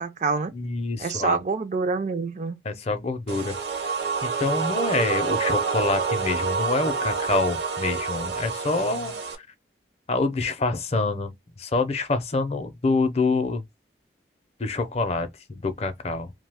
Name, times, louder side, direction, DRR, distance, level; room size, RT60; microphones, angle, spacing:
voice 1, 0.0-0.5 1.0-2.6, right 4 dB, 40° right, 0.3 m, -26 dB
voice 2, 0.5-1.4 2.6-3.6 3.8-3.9 4.2-9.5 10.1-11.3 11.6-13.6 14.6-16.3, left 3 dB, 35° left, 0.5 m, -26 dB
sound 1, 3.3-9.4, right 5 dB, 70° right, 0.7 m, -27 dB
2.7 x 2.1 x 3.3 m
head